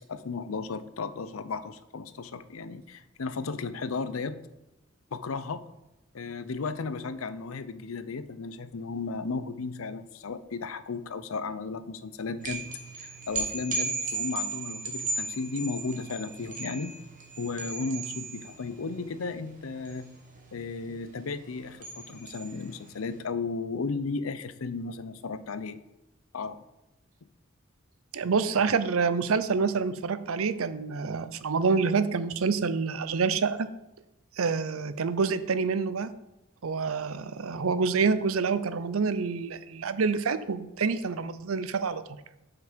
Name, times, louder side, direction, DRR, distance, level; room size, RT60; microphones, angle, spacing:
voice 1, 0.1-4.4 5.1-5.6 6.1-12.7 13.0-17.0 17.4-20.1 20.5-25.8 26.3-26.6, left 4 dB, 90° left, 13 dB, 0.6 m, -34 dB
sound 1, 12.4-23.1, right 3 dB, 40° right, 1.5 m, -36 dB
voice 2, 28.1-33.7 34.4-36.1 36.6-42.0, right 5 dB, 85° right, 13 dB, 0.6 m, -27 dB
7.9 x 5.8 x 5.1 m, 0.93 s
head